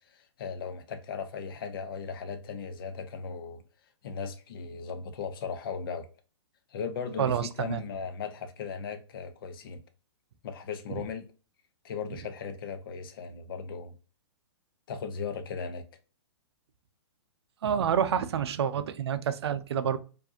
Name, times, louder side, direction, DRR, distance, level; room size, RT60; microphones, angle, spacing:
voice 1, 0.1-3.6 4.0-6.1 6.7-9.8 10.4-11.3 11.8-13.9 14.9-15.8, left 6 dB, 50° left, 0.7 m, -37 dB
voice 2, 7.2-7.8 10.9-11.0 17.6-20.0, right 8 dB, 65° right, 0.5 m, -28 dB
4.7 x 2.6 x 2.7 m
hypercardioid pair, 155°, 15 cm